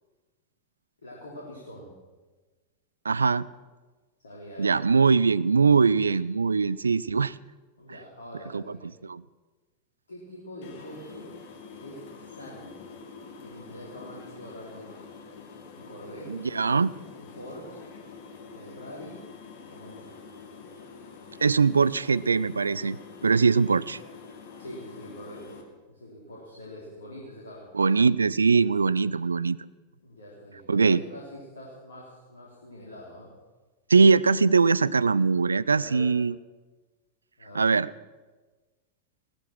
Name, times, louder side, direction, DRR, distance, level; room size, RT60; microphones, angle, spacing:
voice 1, 1.0-1.9 4.2-4.8 7.8-8.9 10.1-11.3 11.8-12.7 13.4-15.1 15.7-16.4 17.2-17.8 18.5-19.2 19.7-20.2 24.6-25.6 25.9-27.7 30.0-33.3 35.7-36.2 37.4-37.7, equal, 70° left, -4 dB, 3.7 m, -44 dB
voice 2, 3.0-3.5 4.6-7.3 8.5-8.6 9.0-9.2 16.3-16.9 21.4-23.0 23.2-24.0 27.7-29.6 30.7-31.0 33.9-36.3 37.5-37.9, right 4 dB, 75° right, 20 dB, 0.4 m, -21 dB
sound 1, 10.6-25.6, left 5 dB, 50° left, 2.2 m, -46 dB
17.0 x 13.5 x 6.0 m, 1.3 s
figure-of-eight pair, 90°, 0 cm